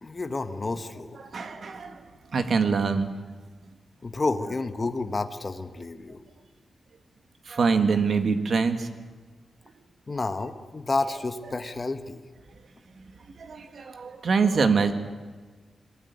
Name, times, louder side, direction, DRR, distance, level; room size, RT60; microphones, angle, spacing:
voice 1, 0.0-1.2 4.0-6.2 10.1-12.2, left 3 dB, 25° left, 8 dB, 1.3 m, -30 dB
voice 2, 1.3-2.0 2.3-3.1 7.5-8.9 13.4-14.9, right 5 dB, 50° right, 8 dB, 1.9 m, -24 dB
22.5 x 20.5 x 9.6 m, 1.4 s
wide cardioid pair, 175°, 0 cm